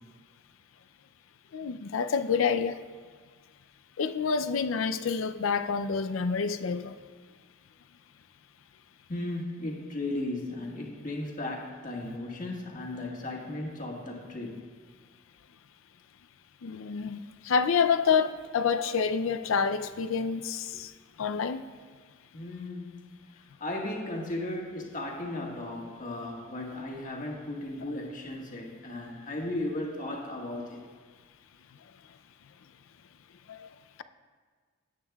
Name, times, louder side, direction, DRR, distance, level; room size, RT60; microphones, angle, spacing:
voice 1, 1.5-2.8 4.0-7.0 12.1-12.2 16.6-17.2 17.4-20.9 21.2-21.6 33.5-33.6, left 6 dB, 80° left, 0.5 m, -28 dB
voice 2, 9.1-14.6 22.3-23.2 23.6-30.8, left 1 dB, 40° left, 1.5 m, -36 dB
17.0 x 8.4 x 2.3 m
head